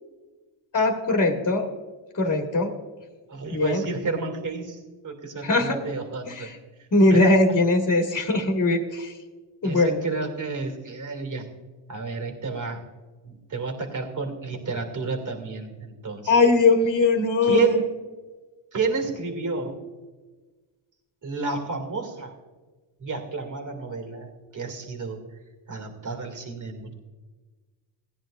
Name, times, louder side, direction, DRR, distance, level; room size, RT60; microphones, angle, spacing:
voice 1, 0.7-1.7 2.1-2.7 3.5-3.8 5.4-5.8 6.3-6.6 6.9-9.1 9.6-10.0 16.3-17.8, left 2 dB, 35° left, 2 dB, 1.7 m, -20 dB
voice 2, 3.3-6.5 6.8-7.6 9.6-11.5 11.9-12.8 13.2-16.3 17.4-17.9 18.7-19.8 21.2-22.3 23.0-25.2 25.7-26.9, right 4 dB, 40° right, 4 dB, 2.4 m, -30 dB
17.5 x 10.0 x 2.5 m, 1.3 s
cardioid pair, 85°, 47 cm